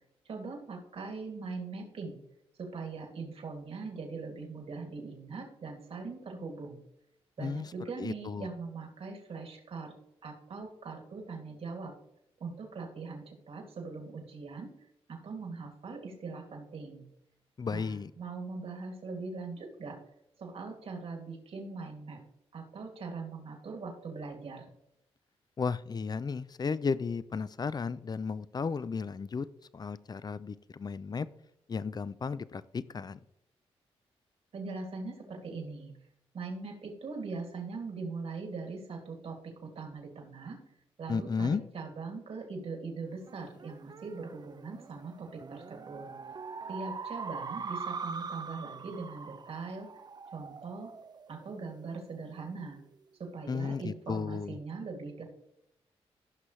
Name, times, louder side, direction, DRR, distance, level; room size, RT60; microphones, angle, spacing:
voice 1, 0.2-2.2 2.6-6.8 7.4-9.9 10.2-11.9 12.4-14.7 15.1-17.1 17.7-20.0 20.4-22.2 22.5-24.7 34.5-35.9 36.3-40.6 41.0-46.1 46.7-49.9 50.3-50.9 51.3-52.8 53.2-55.2, right 4 dB, 65° right, 1 dB, 2.7 m, -41 dB
voice 2, 8.0-8.5 17.6-18.1 25.6-29.5 29.7-31.3 31.7-33.2 41.1-41.6 53.5-54.6, left 5 dB, 40° left, 16 dB, 0.6 m, -34 dB
sound 1, 43.3-52.1, right 5 dB, 40° right, 0.6 m, -43 dB
15.5 x 6.0 x 3.3 m, 0.77 s
cardioid pair, 60°, 11 cm